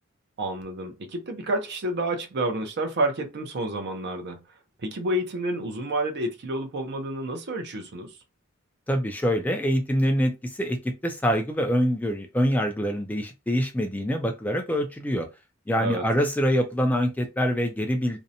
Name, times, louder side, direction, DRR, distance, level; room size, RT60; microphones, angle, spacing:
voice 1, 0.4-4.4 4.8-8.1 15.8-16.1, right 1 dB, 55° right, 0.6 m, -29 dB
voice 2, 8.9-10.8 11.0-15.3 15.7-18.2, equal, 10° left, 0.3 m, -25 dB
2.6 x 2.1 x 2.7 m
head